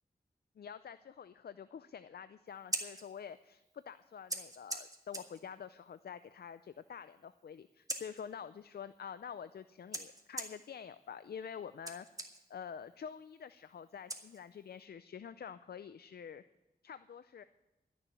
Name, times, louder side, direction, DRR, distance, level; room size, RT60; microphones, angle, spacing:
voice 1, 0.6-12.1 12.5-16.4 16.8-17.4, left 7 dB, 75° left, 13 dB, 0.4 m, -47 dB
Scissors, 2.5-14.8, right 1 dB, 20° right, 1.7 m, -47 dB
12.5 x 7.0 x 9.7 m, 1.0 s
wide cardioid pair, 60°, 16 cm